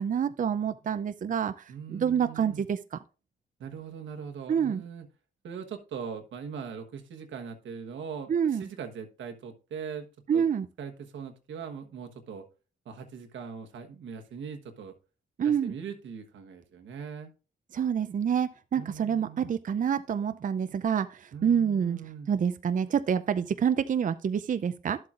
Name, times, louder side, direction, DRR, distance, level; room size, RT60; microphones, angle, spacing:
voice 1, 0.0-3.0 4.5-4.8 8.3-8.7 10.3-10.7 15.4-15.7 17.7-22.0 22.3-25.0, right 7 dB, 45° right, 0.5 m, -27 dB
voice 2, 1.7-2.6 3.6-5.1 5.4-10.1 10.3-10.5 10.8-12.4 12.8-14.9 15.4-17.3 18.7-19.4 21.3-22.3, right 6 dB, 85° right, 1.3 m, -41 dB
11.5 x 7.8 x 2.5 m
cardioid pair, 65°, 19 cm